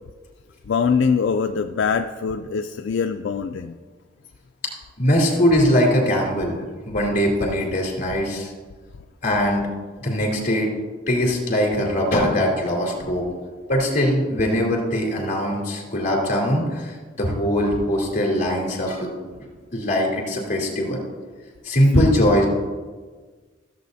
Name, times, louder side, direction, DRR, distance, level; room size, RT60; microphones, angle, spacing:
voice 1, 0.7-3.7 21.9-22.3, left 5 dB, 85° left, 5 dB, 0.4 m, -23 dB
voice 2, 5.0-8.5 9.2-9.7 10.0-10.7 11.1-13.2 13.7-19.1 19.7-21.0 21.6-22.5, equal, 45° left, -1 dB, 3.0 m, -21 dB
14.5 x 7.6 x 2.7 m, 1.4 s
head